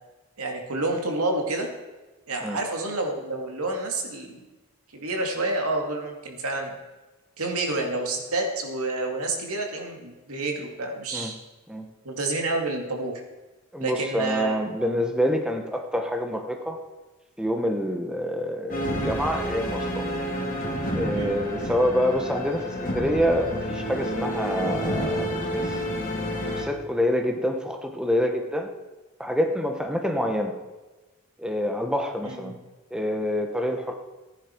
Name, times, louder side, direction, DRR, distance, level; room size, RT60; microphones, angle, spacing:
voice 1, 0.4-1.7 2.3-4.4 4.9-6.7 7.4-11.3 12.0-13.2 13.8-14.9 21.1-21.3 32.2-32.5, right 2 dB, 80° right, 2 dB, 2.3 m, -29 dB
voice 2, 13.7-16.8 17.4-20.1 20.9-25.8 26.4-28.7 29.2-30.5 31.4-32.5 32.9-33.9, equal, 5° right, 4 dB, 1.0 m, -27 dB
sound 1, 18.7-26.6, equal, 40° left, 2.7 m, -29 dB
15.5 x 9.9 x 4.5 m, 1.2 s
head